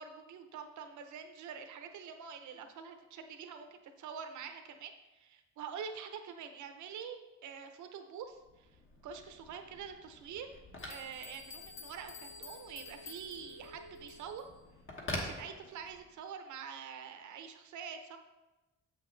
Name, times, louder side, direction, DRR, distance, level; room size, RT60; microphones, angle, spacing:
voice 1, 0.0-8.7 9.0-10.5 10.9-14.5 15.1-18.2, right 7 dB, 75° right, 7 dB, 0.8 m, -46 dB
Telephone, 8.3-16.2, left 1 dB, 40° left, 1.3 m, -47 dB
sound 1, 10.8-14.5, left 5 dB, 60° left, 1.0 m, -52 dB
7.3 x 5.9 x 3.2 m, 1.1 s
cardioid pair, 90°, 30 cm